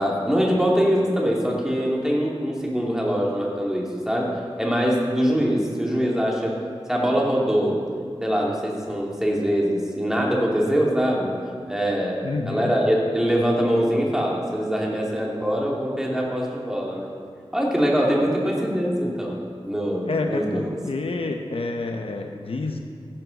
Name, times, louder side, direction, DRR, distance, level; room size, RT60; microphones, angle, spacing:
voice 1, 0.0-6.5 6.9-7.8 8.2-11.3 11.7-17.1 17.5-20.7, equal, 5° right, -3 dB, 2.4 m, -23 dB
voice 2, 12.2-12.8 20.0-22.8, left 3 dB, 70° left, 4 dB, 0.9 m, -28 dB
15.5 x 11.0 x 4.0 m, 2.1 s
wide cardioid pair, 90°, 10 cm